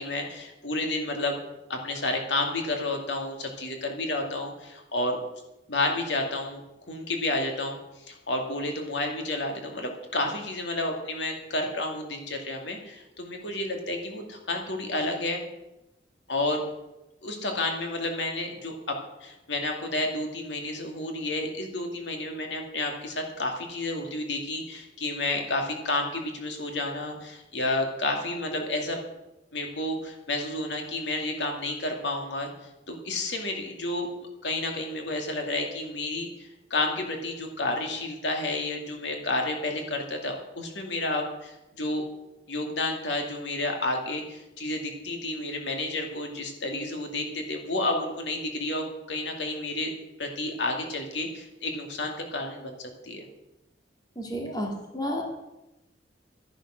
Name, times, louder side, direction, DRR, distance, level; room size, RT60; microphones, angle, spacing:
voice 1, 0.0-1.4 1.7-5.2 5.7-7.8 8.1-15.4 16.3-16.6 17.2-29.0 29.5-32.5 32.9-34.1 34.4-42.0 42.5-49.9 50.2-53.3, left 2 dB, 85° left, 3 dB, 2.5 m, -31 dB
voice 2, 54.2-55.2, equal, 20° left, 1 dB, 2.3 m, -31 dB
13.0 x 10.5 x 6.5 m, 0.96 s
head